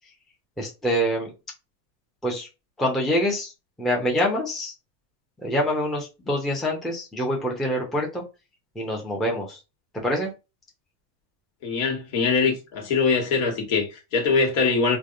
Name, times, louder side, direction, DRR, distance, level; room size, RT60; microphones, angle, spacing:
voice 1, 0.6-1.3 2.2-2.5 2.8-3.5 3.8-4.7 5.4-8.2 8.8-9.6 10.0-10.3, equal, ahead, 0.5 m, -25 dB
voice 2, 11.6-15.0, left 4 dB, 60° left, 1.4 m, -23 dB
3.3 x 2.1 x 2.5 m
supercardioid pair, 110°, 50 cm